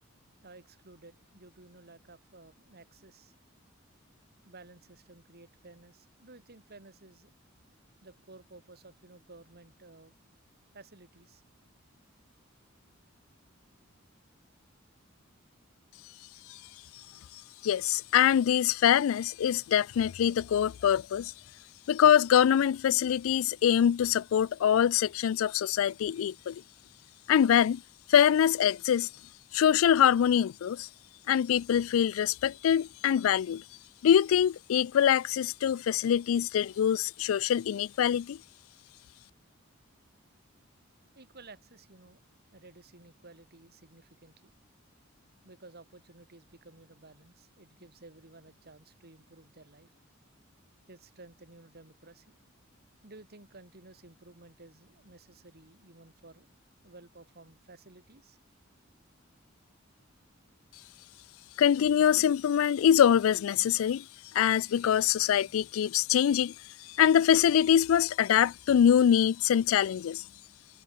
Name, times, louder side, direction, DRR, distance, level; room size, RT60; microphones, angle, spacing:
voice 1, 0.4-3.3 4.4-7.3 8.0-10.1 10.7-11.4 41.1-42.2 42.5-44.5 45.4-49.9 50.9-52.4 53.0-56.5 56.8-58.4, right 2 dB, 50° right, 2.8 m, -54 dB
voice 2, 17.6-21.3 21.9-26.6 27.3-27.8 28.1-29.1 29.5-30.9 31.3-33.6 34.0-38.4 61.6-64.1 64.3-66.5 66.8-70.2, left 9 dB, 80° left, 0.3 m, -24 dB
head